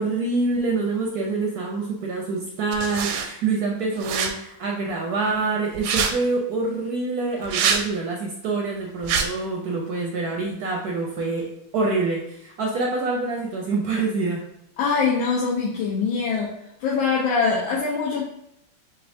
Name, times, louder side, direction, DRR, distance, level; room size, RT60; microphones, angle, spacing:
voice 1, 0.0-14.4, right 3 dB, 70° right, -1 dB, 0.9 m, -26 dB
sound 1, 2.7-3.3 4.0-4.3 5.7-6.1 7.4-7.8 9.0-9.3, right 6 dB, 90° right, 1.4 m, -24 dB
voice 2, 14.8-16.5 16.8-18.3, left 5 dB, 75° left, -5 dB, 1.5 m, -23 dB
6.5 x 2.4 x 2.6 m, 0.75 s
omnidirectional pair, 2.3 m